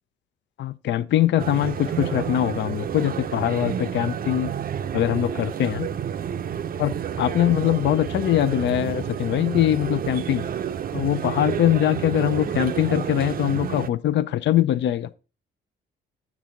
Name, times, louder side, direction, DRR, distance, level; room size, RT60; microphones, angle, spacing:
voice 1, 0.6-4.5 4.9-5.9 6.8-10.4 10.9-15.1, left 12 dB, 65° left, 0.5 m, -22 dB
sound 1, 1.4-13.9, right 8 dB, 50° right, 0.5 m, -30 dB
7.2 x 6.1 x 3.7 m
cardioid pair, 90°, 20 cm